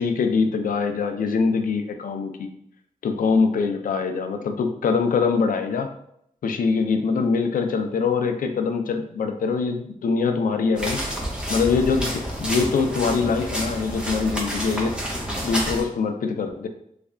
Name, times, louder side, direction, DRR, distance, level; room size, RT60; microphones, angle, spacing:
voice 1, 0.0-2.5 3.0-5.9 6.4-11.0 11.5-14.9 15.4-16.7, left 5 dB, 85° left, 6 dB, 0.4 m, -23 dB
sound 1, 10.7-15.8, equal, 5° right, 0.7 m, -29 dB
3.2 x 2.2 x 3.6 m, 0.72 s
wide cardioid pair, 115°, 14 cm